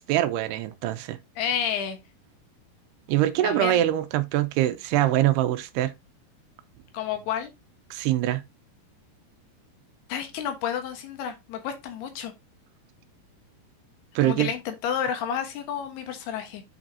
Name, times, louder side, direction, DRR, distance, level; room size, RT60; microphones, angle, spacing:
voice 1, 0.0-1.2 3.1-5.9 7.9-8.4 14.2-14.5, right 14 dB, 90° right, 2.7 m, -24 dB
voice 2, 1.4-2.0 3.4-3.8 6.9-7.5 10.1-12.3 14.2-16.6, left 8 dB, 75° left, 3.3 m, -30 dB
8.0 x 6.0 x 2.7 m
omnidirectional pair, 4.7 m